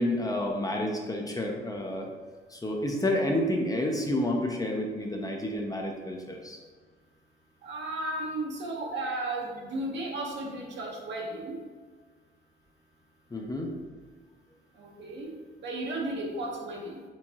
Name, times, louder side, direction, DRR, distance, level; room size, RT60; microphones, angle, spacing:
voice 1, 0.0-2.1 2.5-6.6 13.3-13.7, left 1 dB, 20° left, 1 dB, 0.6 m, -29 dB
voice 2, 7.6-11.6 14.8-15.3 15.6-17.0, right 2 dB, 65° right, -1 dB, 1.1 m, -34 dB
4.6 x 3.5 x 2.8 m, 1.4 s
cardioid pair, 90°, 20 cm